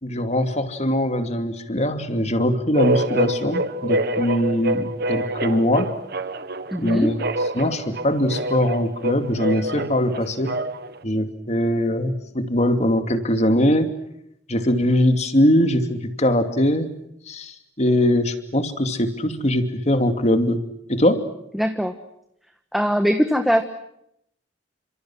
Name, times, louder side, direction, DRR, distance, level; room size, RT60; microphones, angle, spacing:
voice 1, 0.0-5.9 6.8-7.1 7.5-10.6 11.0-13.9 14.5-16.9 17.3-20.6 20.9-21.2, left 1 dB, 40° left, 8 dB, 2.7 m, -21 dB
sound 1, 2.7-11.0, right 1 dB, 60° right, 1.5 m, -26 dB
voice 2, 6.7-7.2 21.5-21.9 22.7-23.6, equal, ahead, 6 dB, 1.4 m, -21 dB
30.0 x 26.5 x 6.3 m, 0.77 s
head